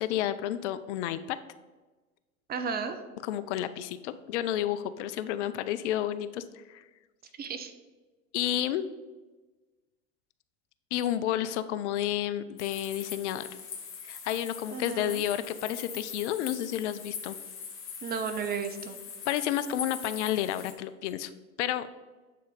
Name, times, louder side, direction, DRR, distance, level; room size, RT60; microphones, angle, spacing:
voice 1, 0.0-1.4 3.2-6.4 6.7-6.8 8.3-8.8 10.9-13.5 14.1-17.4 19.3-21.3 21.6-21.9, left 12 dB, 55° left, 13 dB, 0.5 m, -31 dB
voice 2, 2.5-3.0 7.4-7.7 14.7-15.2 18.0-19.0, right 6 dB, 25° right, 8 dB, 0.6 m, -33 dB
sound 1, 12.6-20.7, left 6 dB, 30° left, 1.4 m, -42 dB
8.4 x 4.0 x 5.0 m, 1.2 s
hypercardioid pair, 85°, 42 cm